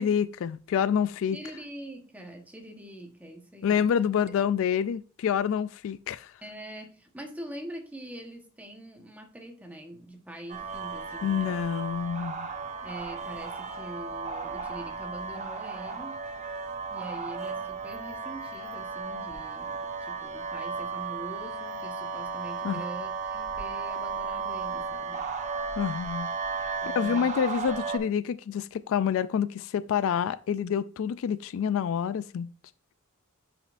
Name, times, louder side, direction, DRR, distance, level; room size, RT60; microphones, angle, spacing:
voice 1, 0.0-1.4 3.6-6.3 11.2-12.5 22.6-22.8 25.8-26.3 26.6-32.5, left 8 dB, 65° left, 0.3 m, -27 dB
voice 2, 1.3-3.9 6.4-11.6 12.8-16.2 16.9-25.3 26.8-27.4, right 1 dB, 5° right, 1.2 m, -43 dB
sound 1, 10.5-28.0, right 4 dB, 35° right, 0.9 m, -35 dB
9.6 x 5.2 x 2.6 m
head